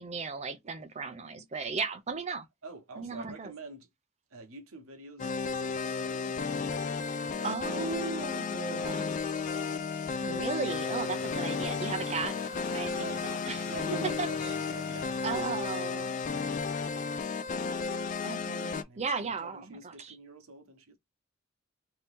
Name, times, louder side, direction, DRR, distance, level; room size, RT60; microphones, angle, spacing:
voice 1, 0.0-2.5 3.0-3.5 7.4-9.1 10.2-12.4 12.7-13.7 14.2-14.5 15.2-16.1 18.2-20.1, right 4 dB, 35° right, 0.5 m, -36 dB
voice 2, 2.6-3.9 4.3-6.4 6.7-6.9 7.2-7.6 8.1-9.1 11.3-11.4 13.0-13.2 13.7-14.4 14.7-15.4 16.3-17.4 18.8-21.0, right 2 dB, 90° right, 0.9 m, -47 dB
sound 1, 5.2-18.8, left 5 dB, 40° left, 0.3 m, -33 dB
sound 2, 10.6-17.8, left 3 dB, 70° left, 1.2 m, -48 dB
2.8 x 2.7 x 3.5 m
head